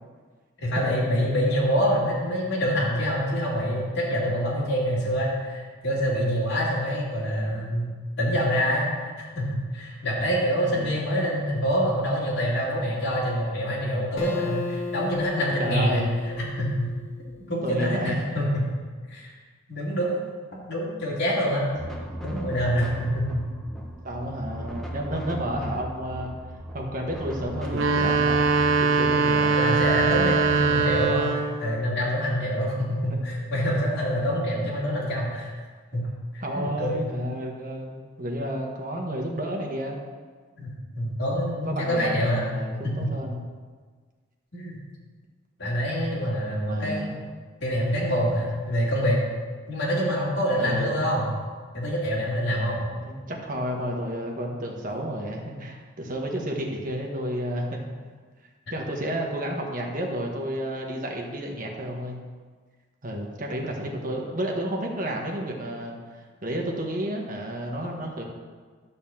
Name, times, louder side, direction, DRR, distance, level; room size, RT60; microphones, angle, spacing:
voice 1, 0.6-8.9 9.3-16.1 16.4-16.9 17.5-18.6 19.1-19.3 19.7-20.2 20.6-21.7 22.2-23.4 29.5-35.5 35.9-36.1 36.3-37.0 40.6-40.7 40.9-43.1 44.5-44.8 45.6-47.1 47.6-49.2 49.7-51.3 51.7-52.8, equal, 55° left, -7 dB, 2.7 m, -26 dB
Acoustic guitar, 14.2-17.6, left 3 dB, 75° left, 1.5 m, -35 dB
voice 2, 15.6-16.1 17.6-18.2 24.0-26.3 26.7-29.5 33.1-33.3 36.4-40.0 41.6-43.4 46.7-47.1 50.6-51.1 52.9-57.9 58.7-62.2 63.0-66.0 66.4-68.2, equal, 40° right, 0 dB, 1.4 m, -31 dB
sound 1, 21.7-31.1, equal, ahead, 1.1 m, -37 dB
sound 2, 27.7-31.7, right 4 dB, 70° right, 0.8 m, -22 dB
10.5 x 4.2 x 7.2 m, 1.5 s
head